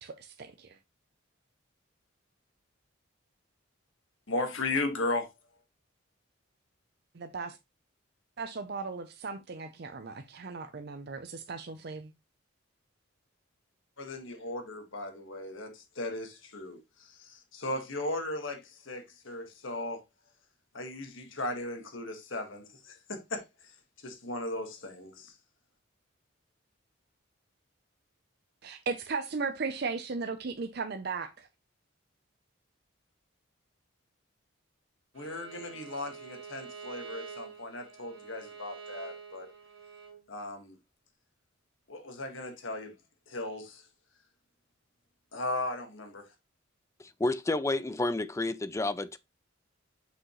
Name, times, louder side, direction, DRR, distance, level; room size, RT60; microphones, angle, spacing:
voice 1, 0.0-0.8 7.1-7.6 8.4-12.1 28.6-31.5, right 4 dB, 50° right, 0.5 m, -36 dB
voice 2, 4.3-5.3 14.0-20.0 20.7-23.4 24.0-25.3 35.1-39.5 40.3-40.8 41.9-42.9 43.3-43.8 45.3-46.3, left 2 dB, 70° left, 1.5 m, -36 dB
Bowed string instrument, 35.2-40.2, right 6 dB, 75° right, 1.8 m, -46 dB
voice 3, 47.0-49.2, left 2 dB, 15° left, 0.3 m, -30 dB
6.2 x 5.2 x 3.0 m
head